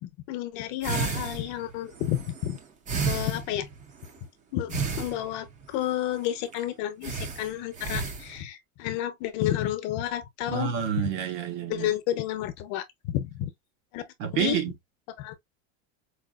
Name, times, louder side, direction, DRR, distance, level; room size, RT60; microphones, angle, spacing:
voice 1, 0.0-2.6 3.0-3.7 4.5-10.7 11.0-11.1 11.7-13.5 13.9-14.0 14.3-14.6 15.2-15.4, left 12 dB, 50° left, 0.8 m, -31 dB
sound 1, 0.8-4.2 4.7-5.6 6.2-6.3 6.5-6.6 7.0-8.4, right 5 dB, 20° right, 0.5 m, -32 dB
voice 2, 10.5-11.9 14.2-14.7, right 8 dB, 75° right, 1.5 m, -29 dB
4.8 x 2.5 x 2.3 m
cardioid pair, 165°, 39 cm